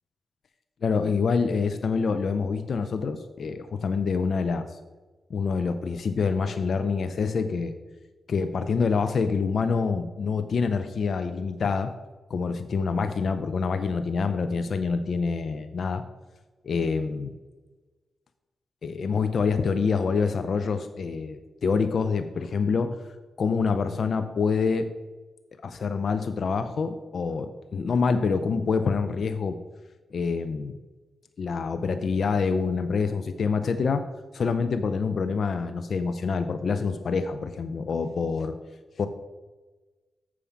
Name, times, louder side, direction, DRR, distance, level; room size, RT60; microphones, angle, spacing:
voice 1, 0.8-4.7 5.3-7.7 8.3-11.9 12.3-16.0 16.6-17.3 18.8-23.0 23.4-24.9 25.6-29.6 30.1-30.8 31.4-34.1 34.3-38.5 39.0-39.1, left 5 dB, 65° left, 9 dB, 0.5 m, -26 dB
7.2 x 4.9 x 7.1 m, 1.2 s
cardioid pair, 55°, 0 cm